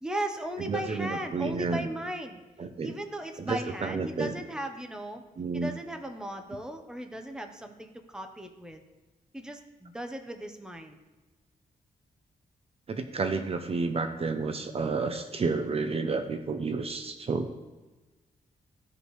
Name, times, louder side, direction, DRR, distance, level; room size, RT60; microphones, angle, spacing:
voice 1, 0.0-2.4 2.8-5.2 5.5-8.8 9.3-11.0, right 1 dB, 5° right, 5 dB, 0.9 m, -37 dB
voice 2, 0.6-1.9 2.6-2.9 3.4-4.4 5.4-5.7 12.9-17.5, right 4 dB, 40° right, 7 dB, 0.6 m, -30 dB
15.5 x 5.3 x 3.2 m, 1.2 s
cardioid pair, 110°, 15 cm